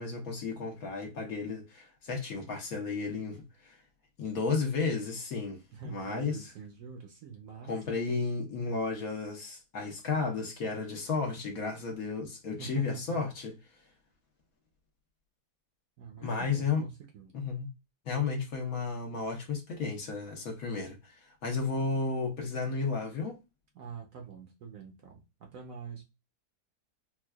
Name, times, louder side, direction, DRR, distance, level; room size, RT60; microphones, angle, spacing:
voice 1, 0.0-3.8 4.2-5.6 5.8-6.4 7.7-13.5 16.2-16.8 17.3-17.7 18.0-23.4, left 4 dB, 65° left, 1.2 m, -33 dB
voice 2, 5.7-7.7 8.1-8.2 12.6-13.2 16.0-17.3 23.7-26.0, right 6 dB, 65° right, 1.0 m, -45 dB
4.5 x 2.3 x 2.2 m
omnidirectional pair, 1.8 m